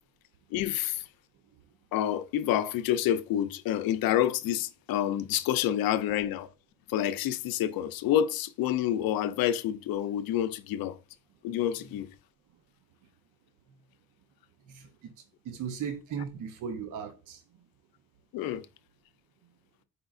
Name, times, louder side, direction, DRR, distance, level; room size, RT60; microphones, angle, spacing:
voice 1, 0.5-1.0 1.9-6.5 6.9-11.0 11.4-12.1 18.3-18.7, left 11 dB, 75° left, 0.5 m, -28 dB
voice 2, 14.7-15.1 15.4-17.4, right 7 dB, 60° right, 0.7 m, -37 dB
5.0 x 3.7 x 2.4 m
cardioid pair, 145°, 35 cm